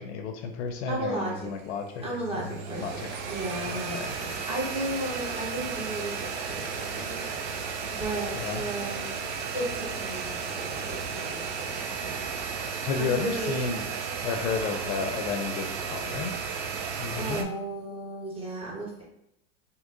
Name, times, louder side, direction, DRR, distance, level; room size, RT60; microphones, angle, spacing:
voice 1, 0.0-2.0 2.5-3.1 3.7-4.1 8.3-8.6 12.9-13.9 14.2-16.3 17.0-17.5, left 5 dB, 60° left, 6 dB, 0.5 m, -32 dB
sound 1, 0.7-0.8 1.1-1.6 1.9-17.4, right 5 dB, 60° right, 0.6 m, -34 dB
voice 2, 0.9-1.5 2.0-9.1 9.5-12.3 13.0-13.6 17.2-19.0, right 1 dB, 15° right, -3 dB, 1.1 m, -35 dB
3.5 x 2.8 x 2.6 m, 0.78 s
hypercardioid pair, 90°, 39 cm